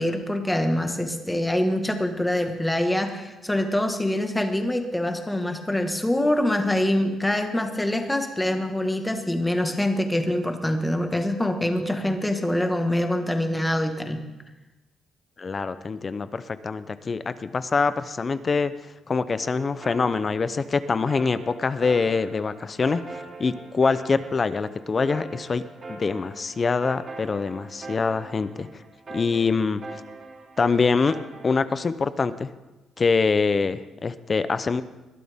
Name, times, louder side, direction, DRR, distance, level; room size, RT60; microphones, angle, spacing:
voice 1, 0.0-14.2, left 1 dB, 10° left, 5 dB, 1.7 m, -25 dB
voice 2, 15.4-18.7 19.1-25.6 25.9-28.7 29.1-29.8 30.6-31.2 31.4-32.5 33.0-34.8, left 4 dB, 35° left, 13 dB, 0.7 m, -24 dB
sound 1, 19.4-31.5, right 3 dB, 45° right, 3.5 m, -42 dB
21.0 x 12.0 x 3.7 m, 1.1 s
cardioid pair, 90°, 0 cm